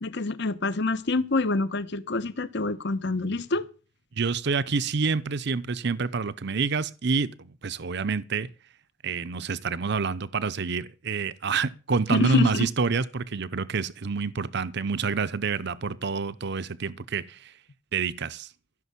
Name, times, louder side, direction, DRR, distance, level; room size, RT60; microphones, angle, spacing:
voice 1, 0.0-3.7 12.1-12.7, left 3 dB, 60° left, 1.1 m, -26 dB
voice 2, 4.2-8.5 9.0-17.5 17.9-18.5, right 4 dB, 60° right, 0.8 m, -27 dB
15.5 x 6.6 x 8.3 m
head